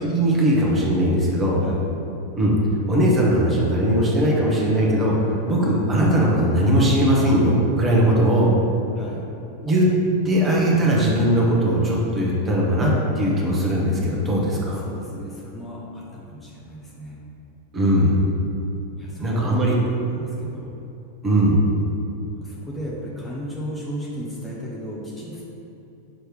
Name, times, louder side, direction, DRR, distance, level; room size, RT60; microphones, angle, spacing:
voice 1, 0.0-1.6 2.4-2.5 2.9-8.5 9.6-9.9 10.2-14.8 17.7-18.2 19.2-19.7 21.2-21.6, right 1 dB, 20° right, -4 dB, 1.2 m, -19 dB
voice 2, 14.7-17.2 19.0-20.8 22.3-25.4, equal, 10° left, -6 dB, 0.9 m, -35 dB
6.4 x 3.2 x 4.7 m, 2.8 s
figure-of-eight pair, 90°, 0 cm